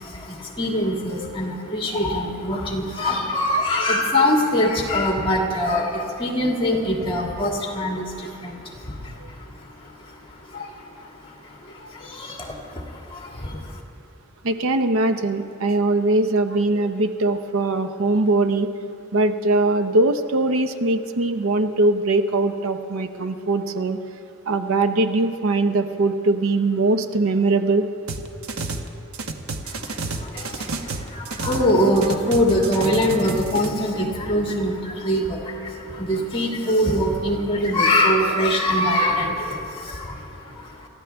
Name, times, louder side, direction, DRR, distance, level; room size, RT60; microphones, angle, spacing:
voice 1, 0.0-13.8 29.6-40.9, left 1 dB, 25° left, 0 dB, 2.1 m, -24 dB
voice 2, 14.4-18.7 19.1-24.0 24.5-27.9, right 2 dB, 70° right, 8 dB, 0.7 m, -21 dB
sound 1, 28.1-28.9 29.1-31.7 32.0-33.7, right 3 dB, 85° right, 1.1 m, -30 dB
28.0 x 14.5 x 3.5 m, 2.7 s
head